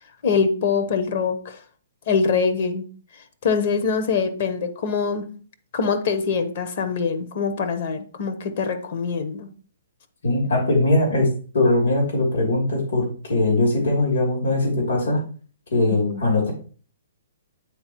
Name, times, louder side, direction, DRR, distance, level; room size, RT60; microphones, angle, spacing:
voice 1, 0.2-1.6 2.1-2.8 3.4-5.3 5.7-9.5 16.1-16.2, left 5 dB, 50° left, 8 dB, 1.0 m, -23 dB
voice 2, 10.2-11.3 11.5-15.2 15.7-16.5, left 2 dB, 75° left, -2 dB, 2.9 m, -20 dB
8.6 x 4.1 x 3.0 m, 0.40 s
hypercardioid pair, 160°, 0 cm